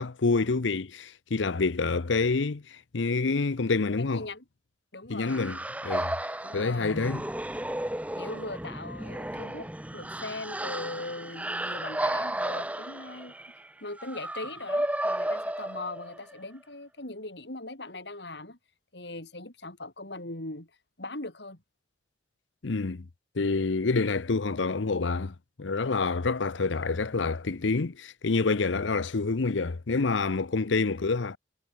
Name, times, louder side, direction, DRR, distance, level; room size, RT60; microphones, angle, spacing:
voice 1, 0.0-4.2 5.1-6.1 6.5-7.2 22.6-23.1 23.4-31.4, left 4 dB, 90° left, 0.8 m, -27 dB
voice 2, 4.0-4.4 4.9-5.5 6.4-7.0 8.2-13.4 13.8-18.6 18.9-20.7 21.0-21.6 30.6-30.9, left 2 dB, 65° left, 4.0 m, -40 dB
sound 1, 5.3-16.3, right 1 dB, 10° right, 1.5 m, -33 dB
head